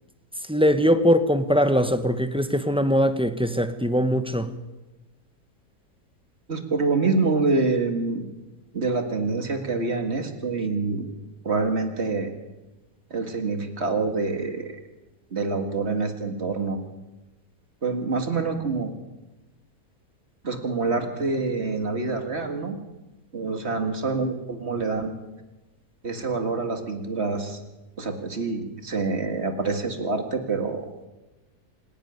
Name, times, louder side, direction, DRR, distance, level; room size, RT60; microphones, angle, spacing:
voice 1, 0.5-4.5, equal, 5° right, 10 dB, 0.8 m, -21 dB
voice 2, 6.5-8.2 8.7-11.1 11.4-12.3 13.1-14.7 15.3-16.8 17.8-18.9 20.4-22.8 23.3-25.1 26.0-27.6 28.0-30.9, right 3 dB, 45° right, 6 dB, 2.2 m, -26 dB
26.5 x 11.0 x 9.5 m, 1.1 s
omnidirectional pair, 1.7 m